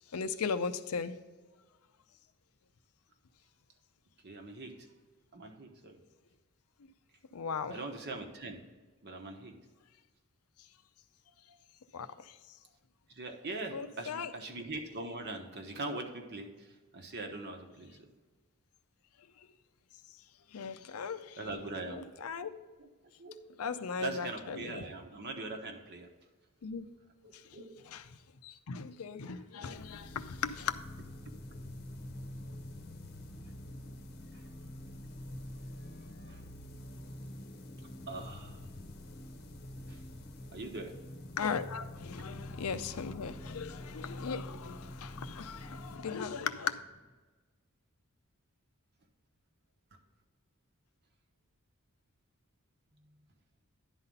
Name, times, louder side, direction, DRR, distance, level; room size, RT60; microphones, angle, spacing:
voice 1, 0.1-1.2 7.3-7.8 11.9-12.1 13.7-14.3 20.5-21.4 21.9-22.5 23.6-24.9 26.6-26.8 27.9-28.0 28.4-30.8 41.4-46.8, left 6 dB, 80° left, 11 dB, 0.5 m, -37 dB
voice 2, 4.2-4.7 5.3-6.0 7.7-8.6 9.0-9.6 13.1-16.7 16.9-18.1 21.4-22.0 22.8-22.9 23.2-23.4 24.0-26.1 27.2-27.7 29.6-29.8 34.3-34.4 35.8-36.4 38.1-38.6 39.9-40.0 40.5-40.9, right 2 dB, 50° right, 4 dB, 1.1 m, -42 dB
sound 1, 29.6-47.1, left 1 dB, 45° left, 0.8 m, -46 dB
11.0 x 4.1 x 5.4 m, 1.3 s
head